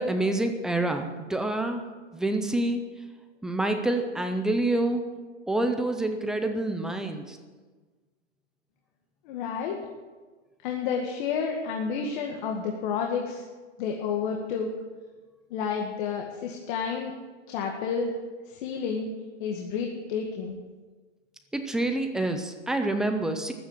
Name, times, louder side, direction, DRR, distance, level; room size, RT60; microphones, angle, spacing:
voice 1, 0.0-1.8 2.1-2.8 3.4-5.0 5.5-7.4 21.5-23.5, right 2 dB, ahead, 6 dB, 0.3 m, -27 dB
voice 2, 9.3-9.8 10.6-13.4 13.8-14.7 15.5-17.1 17.5-18.1 18.5-19.1 19.4-20.6, left 6 dB, 40° left, 1 dB, 2.0 m, -30 dB
15.0 x 11.0 x 7.3 m, 1.4 s
hypercardioid pair, 135°, 37 cm